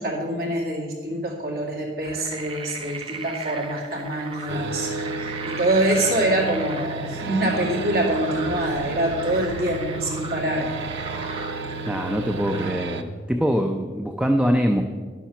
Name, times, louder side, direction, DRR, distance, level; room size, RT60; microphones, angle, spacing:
voice 1, 0.0-4.9 5.4-10.7, right 1 dB, 55° right, -2 dB, 2.4 m, -25 dB
sound 1, 2.0-12.7, right 3 dB, 30° right, 0.8 m, -37 dB
sound 2, 4.5-13.0, right 3 dB, 85° right, 0.8 m, -32 dB
voice 2, 11.8-14.8, equal, 5° right, 4 dB, 0.5 m, -23 dB
11.5 x 7.2 x 6.0 m, 1.5 s
head